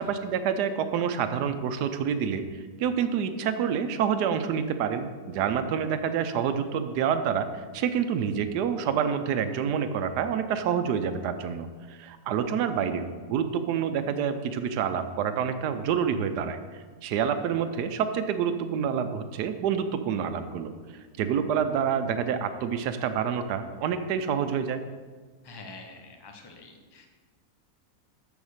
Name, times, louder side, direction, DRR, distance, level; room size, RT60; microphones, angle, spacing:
voice 1, 0.0-2.4 2.8-16.6 17.0-20.7 21.2-24.8, right 7 dB, 85° right, 9 dB, 1.2 m, -27 dB
voice 2, 25.4-27.1, left 3 dB, 20° left, 4 dB, 0.8 m, -46 dB
7.2 x 7.0 x 6.5 m, 1.4 s
omnidirectional pair, 1.7 m